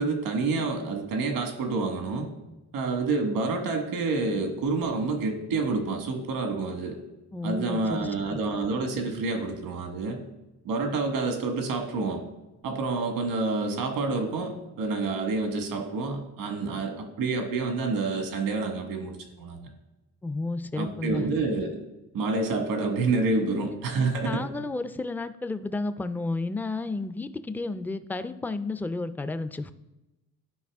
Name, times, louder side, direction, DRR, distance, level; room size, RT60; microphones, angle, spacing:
voice 1, 0.0-2.3 2.7-7.0 7.4-10.2 10.6-12.2 12.6-19.7 20.8-21.8 22.1-24.4, right 3 dB, 85° right, 4 dB, 1.5 m, -28 dB
voice 2, 7.3-8.0 8.3-8.4 20.2-21.3 23.4-23.8 24.2-29.7, left 3 dB, 5° left, 11 dB, 0.4 m, -32 dB
11.0 x 4.7 x 3.5 m, 1.0 s
cardioid pair, 85°, 33 cm